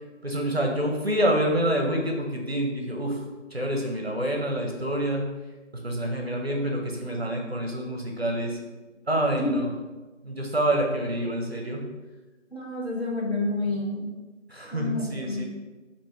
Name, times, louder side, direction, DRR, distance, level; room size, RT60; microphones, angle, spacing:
voice 1, 0.2-3.2 3.5-5.3 5.7-8.6 9.1-9.7 10.2-11.9 14.5-15.4, right 1 dB, 55° right, 1 dB, 0.5 m, -27 dB
voice 2, 12.5-14.1 14.7-15.4, left 2 dB, 55° left, -4 dB, 0.9 m, -29 dB
3.2 x 2.5 x 3.4 m, 1.2 s
figure-of-eight pair, 175°, 39 cm